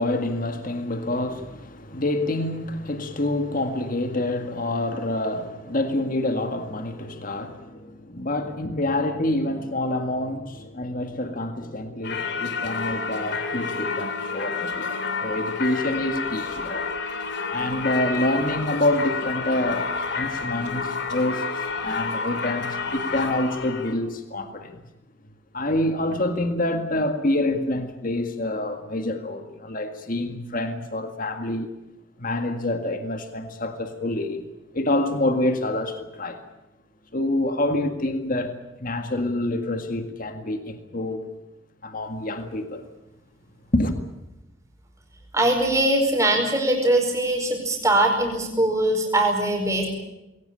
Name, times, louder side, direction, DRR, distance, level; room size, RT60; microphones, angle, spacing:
voice 1, 0.0-16.9 17.5-19.9 20.2-24.8 25.5-31.7 32.2-34.4 34.7-36.4 37.1-38.5 38.8-41.3 41.8-42.9 43.7-44.0, left 1 dB, 45° left, 1.9 m, -27 dB
Singing / Church bell, 12.0-24.0, left 4 dB, 60° left, 2.8 m, -29 dB
voice 2, 45.3-49.9, right 1 dB, 15° right, 5.0 m, -21 dB
21.5 x 18.0 x 10.0 m
head